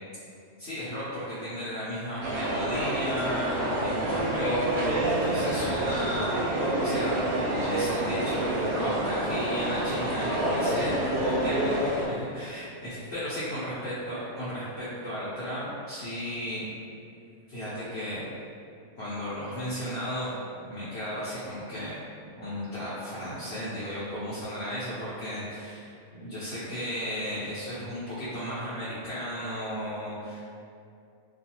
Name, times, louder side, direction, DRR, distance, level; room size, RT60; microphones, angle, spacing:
voice 1, 0.6-11.0 11.2-11.7 12.1-16.7 17.5-18.3 19.0-21.9 22.2-25.9 26.2-30.5, equal, 60° left, -12 dB, 0.8 m, -35 dB
sound 1, 2.2-12.1, right 1 dB, 90° right, 1.1 m, -27 dB
2.4 x 2.3 x 2.8 m, 2.5 s
omnidirectional pair, 1.5 m